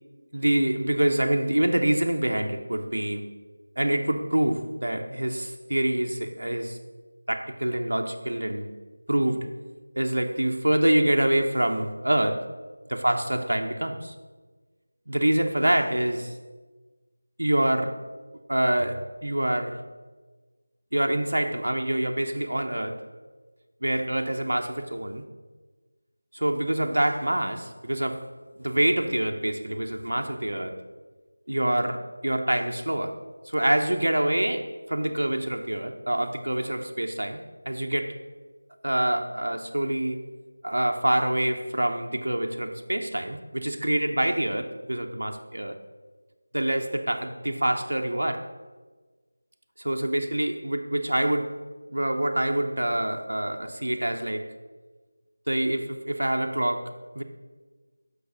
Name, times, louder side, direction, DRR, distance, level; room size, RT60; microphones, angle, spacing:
voice 1, 0.3-3.3 3.8-6.8 7.3-8.7 9.1-9.5 9.9-12.5 12.9-14.1 15.1-16.4 17.4-18.0 18.5-19.8 20.9-23.0 23.8-25.2 26.3-28.3 28.6-30.8 31.5-33.2 33.5-38.2 38.8-40.2 40.6-45.8 46.5-48.5 49.8-51.6 51.9-54.5 55.5-57.2, right 1 dB, 80° right, 4 dB, 0.7 m, -26 dB
6.4 x 4.7 x 6.3 m, 1.3 s
figure-of-eight pair, 170°, 0 cm